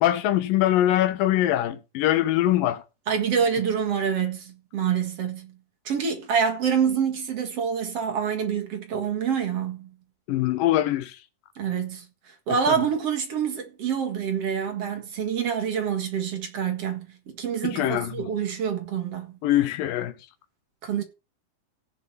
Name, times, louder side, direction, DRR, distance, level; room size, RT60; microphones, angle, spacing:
voice 1, 0.0-2.8 10.3-11.2 12.7-12.8 17.7-18.1 19.4-20.1, left 13 dB, 90° left, 2.8 m, -22 dB
voice 2, 3.1-5.6 5.8-9.9 11.6-19.4 20.8-21.0, right 7 dB, 50° right, 2.4 m, -27 dB
16.5 x 7.1 x 4.2 m
omnidirectional pair, 3.9 m